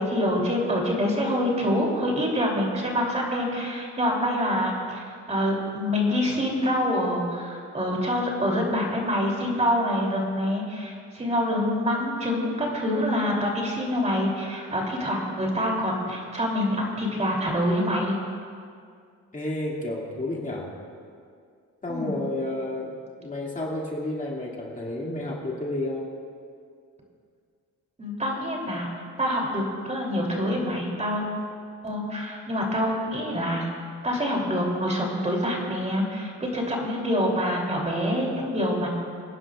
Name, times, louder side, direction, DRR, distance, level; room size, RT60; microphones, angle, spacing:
voice 1, 0.0-18.2 21.9-22.2 28.0-28.9 29.2-31.2 31.8-33.7 34.0-38.9, equal, 25° right, -2 dB, 3.1 m, -26 dB
voice 2, 19.3-20.7 21.8-22.9 23.2-26.1, left 1 dB, 25° left, -4 dB, 2.3 m, -31 dB
26.0 x 10.0 x 2.5 m, 2.2 s
cardioid pair, 90°, 30 cm